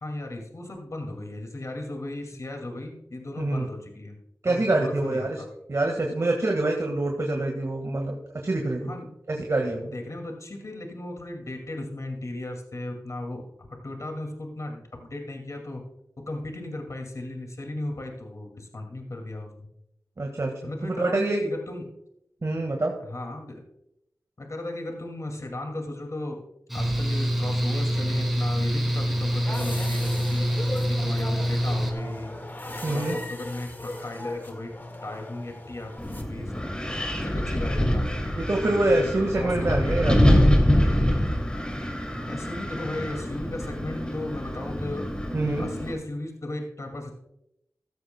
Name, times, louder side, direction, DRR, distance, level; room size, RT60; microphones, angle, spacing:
voice 1, 0.0-4.2 4.5-5.5 8.8-9.1 9.9-15.8 16.3-19.7 20.6-21.9 23.0-23.6 24.4-26.4 26.7-30.5 30.9-32.3 32.6-34.7 35.0-36.7 37.2-38.3 39.1-40.0 42.3-45.1 45.6-47.1, left 1 dB, 55° left, 3 dB, 2.3 m, -36 dB
voice 2, 4.4-5.4 5.7-8.2 8.4-8.9 9.3-9.9 20.2-21.4 22.4-22.9 32.8-33.2 38.4-40.6 45.3-45.7, right 2 dB, 50° right, 2 dB, 1.7 m, -26 dB
Mechanical fan, 26.7-31.9, equal, ahead, 2.6 m, -26 dB
sound 1, 29.3-36.2, left 1 dB, 30° left, 1.8 m, -38 dB
Wind, 36.0-45.9, equal, 15° left, 2.5 m, -25 dB
15.0 x 13.0 x 2.2 m, 0.81 s
wide cardioid pair, 55°, 6 cm